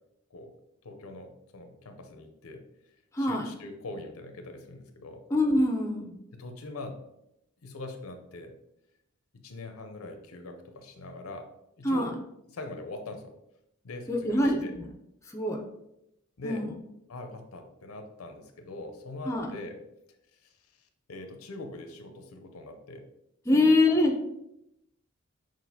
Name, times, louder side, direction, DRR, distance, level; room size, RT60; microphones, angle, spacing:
voice 1, 0.8-2.6 3.2-5.2 6.3-7.0 7.6-8.5 9.3-11.5 11.8-12.1 12.5-13.3 13.8-14.7 16.4-16.7 17.1-19.8 20.4-20.5 21.1-23.1 23.5-23.7, left 2 dB, 90° left, 5 dB, 0.6 m, -42 dB
voice 2, 3.1-3.5 5.3-6.1 11.8-12.1 14.1-14.8 15.3-15.6 16.4-16.7 19.3-19.5 23.5-24.1, left 2 dB, 15° left, 2 dB, 0.4 m, -24 dB
5.9 x 2.5 x 2.7 m, 0.83 s
head